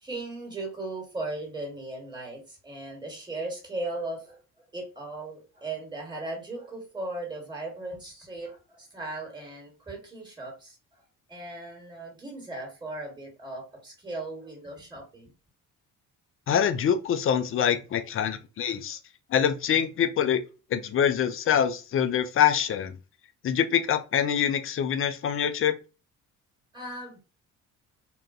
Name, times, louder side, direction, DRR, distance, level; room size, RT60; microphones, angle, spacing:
voice 1, 0.0-4.4 4.7-11.0 11.3-15.3 17.9-18.3 26.7-27.2, right 2 dB, 10° right, 1.4 m, -37 dB
voice 2, 16.5-19.0 19.3-20.4 20.7-23.0 23.4-25.7, left 9 dB, 35° left, 0.4 m, -25 dB
2.4 x 2.2 x 2.5 m
hypercardioid pair, 50°, 41 cm